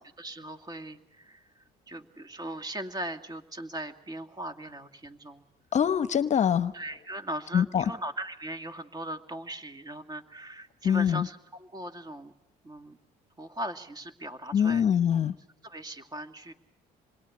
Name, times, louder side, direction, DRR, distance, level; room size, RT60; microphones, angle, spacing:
voice 1, 0.2-1.5 1.9-5.4 6.7-12.3 12.6-13.0 13.4-14.8 15.1-15.2 15.6-16.5, right 1 dB, 25° right, 8 dB, 2.3 m, -39 dB
voice 2, 5.7-6.7 7.5-7.8 10.8-11.3 14.5-15.3, left 8 dB, 45° left, 14 dB, 1.0 m, -24 dB
26.5 x 22.0 x 9.7 m, 0.81 s
cardioid pair, 110°, 17 cm